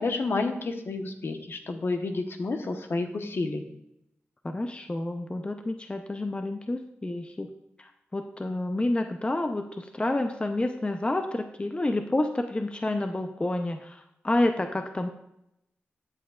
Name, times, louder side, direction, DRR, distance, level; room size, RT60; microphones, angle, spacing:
voice 1, 0.0-3.6, left 3 dB, 60° left, 5 dB, 1.1 m, -30 dB
voice 2, 4.4-7.5 7.8-15.1, left 2 dB, 25° left, 6 dB, 0.6 m, -29 dB
13.0 x 7.2 x 2.4 m, 0.81 s
cardioid pair, 60°, 5 cm